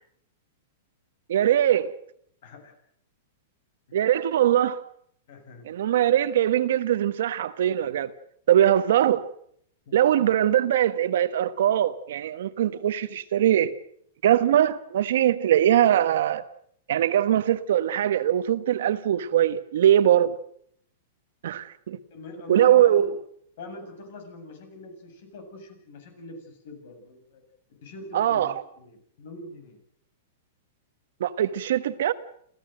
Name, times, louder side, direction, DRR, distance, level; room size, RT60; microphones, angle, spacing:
voice 1, 1.3-1.9 3.9-4.9 5.6-8.1 8.5-9.3 9.9-13.7 14.2-16.5 16.9-20.3 21.4-22.0 22.5-23.1 28.1-28.6 31.2-32.1, right 11 dB, 70° right, 1.3 m, -21 dB
voice 2, 2.4-2.7 3.9-4.0 5.3-5.7 9.9-10.0 22.1-23.1 23.6-27.4 27.8-29.8, left 2 dB, 60° left, 7.4 m, -43 dB
27.5 x 15.0 x 7.9 m
supercardioid pair, 155°, 0 cm